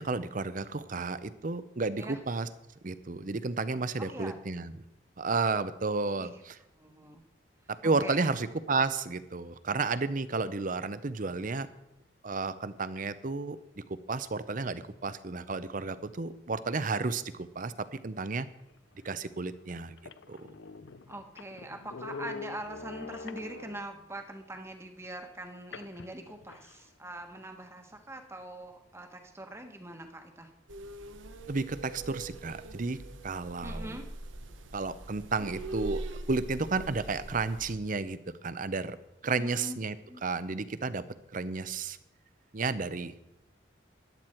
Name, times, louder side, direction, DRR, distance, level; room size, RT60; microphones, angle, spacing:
voice 1, 0.0-2.5 2.8-4.7 5.2-6.6 7.8-11.7 12.2-13.6 14.1-17.7 18.0-18.5 19.0-20.0 20.3-20.5 31.5-33.0 33.2-33.9 34.7-36.0 36.3-39.0 39.2-39.9 40.2-41.0 41.3-42.0 42.5-43.1, right 3 dB, 45° right, 14 dB, 0.6 m, -32 dB
voice 2, 4.0-4.4 6.2-6.4 6.8-7.2 8.0-8.3 21.1-30.5 33.6-34.1 39.4-39.8 40.1-40.2, right 1 dB, 15° right, 5 dB, 1.3 m, -43 dB
sound 1, 19.0-19.1 19.7-19.8 20.0-24.0 25.7-26.8, left 4 dB, 65° left, 0.5 m, -44 dB
sound 2, 30.7-37.7, right 1 dB, 80° right, 1.0 m, -42 dB
14.0 x 10.5 x 4.4 m, 0.89 s
head